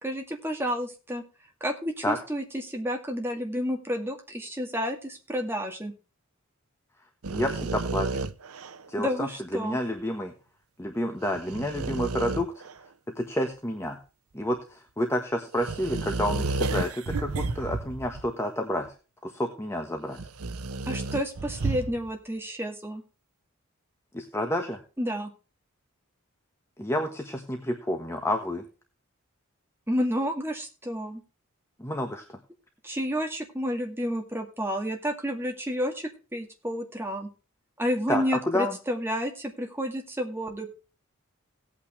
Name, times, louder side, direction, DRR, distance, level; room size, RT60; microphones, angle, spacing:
voice 1, 0.0-1.2 1.6-5.9 9.0-9.8 20.9-23.0 25.0-25.3 29.9-31.2 32.8-37.3 37.8-40.8, equal, 10° right, 3 dB, 2.2 m, -30 dB
sound 1, 7.2-8.9 11.3-12.7 15.5-18.3 18.9-19.0 20.2-22.1, right 3 dB, 85° right, 0.8 m, -31 dB
voice 2, 7.3-8.2 8.9-10.3 10.8-12.5 13.1-14.0 14.3-18.9 19.2-20.2 24.1-24.8 26.8-28.6 31.8-32.4 38.1-38.8, left 1 dB, 10° left, 4 dB, 1.4 m, -29 dB
17.5 x 8.8 x 3.2 m, 0.34 s
head